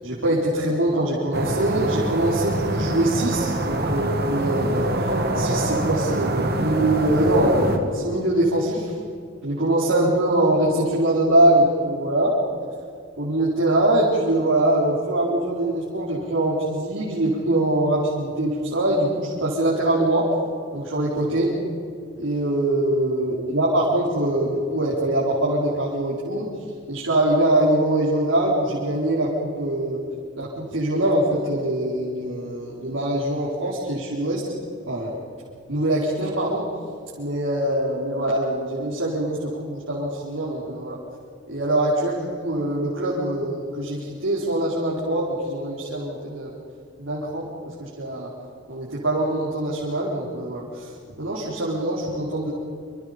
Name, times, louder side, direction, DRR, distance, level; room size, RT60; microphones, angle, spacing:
voice 1, 0.0-4.9 5.3-8.9 9.4-12.3 13.2-20.3 20.7-21.5 22.2-26.5 26.9-30.0 30.4-34.4 34.9-35.1 35.7-36.6 37.2-41.0 41.5-46.5 47.0-47.5 47.8-48.3 48.7-50.9 51.2-52.5, right 1 dB, 85° right, -7 dB, 4.4 m, -23 dB
sound 1, 1.3-7.8, right 1 dB, 50° right, 2.2 m, -25 dB
27.0 x 26.5 x 5.3 m, 2.3 s
head